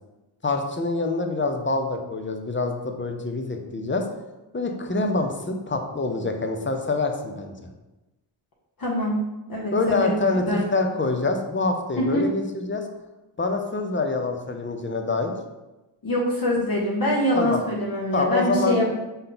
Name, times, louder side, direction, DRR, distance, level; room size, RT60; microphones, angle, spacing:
voice 1, 0.4-4.0 4.5-7.7 9.7-12.8 13.4-15.3 17.3-17.6 18.1-18.9, left 3 dB, 25° left, 4 dB, 0.5 m, -25 dB
voice 2, 8.8-10.2 10.5-10.6 12.0-12.3 16.0-18.9, equal, 45° left, -5 dB, 1.0 m, -24 dB
5.4 x 2.2 x 3.9 m, 1.0 s
cardioid pair, 65°, 49 cm